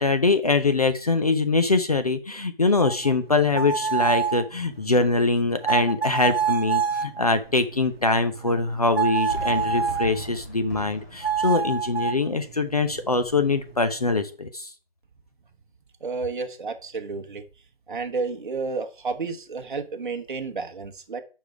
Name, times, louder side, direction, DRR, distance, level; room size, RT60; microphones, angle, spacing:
voice 1, 0.0-14.7, left 3 dB, 40° left, 9 dB, 0.5 m, -23 dB
sound 1, 2.8-10.2 11.2-14.1, right 6 dB, 75° right, 1.0 m, -28 dB
Fireworks, 9.3-14.3, equal, 15° left, 1.0 m, -40 dB
voice 2, 16.0-17.4 17.9-21.2, right 4 dB, 55° right, 6 dB, 1.1 m, -31 dB
5.4 x 5.1 x 4.7 m, 0.36 s
hypercardioid pair, 175°, 30 cm